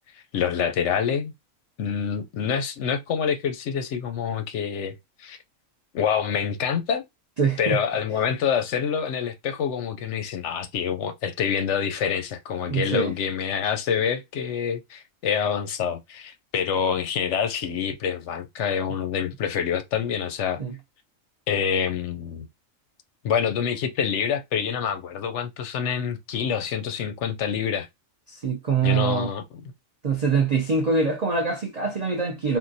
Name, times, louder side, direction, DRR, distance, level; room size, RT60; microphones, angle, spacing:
voice 1, 0.3-1.3 1.8-4.9 5.2-5.4 5.9-7.0 7.6-20.6 21.5-22.5 23.2-27.9 28.8-29.4, left 7 dB, 65° left, 0.8 m, -26 dB
voice 2, 7.4-7.8 12.7-13.1 20.6-20.7 28.3-29.3 30.0-32.6, right 5 dB, 65° right, 0.4 m, -24 dB
3.7 x 2.4 x 2.6 m
omnidirectional pair, 1.4 m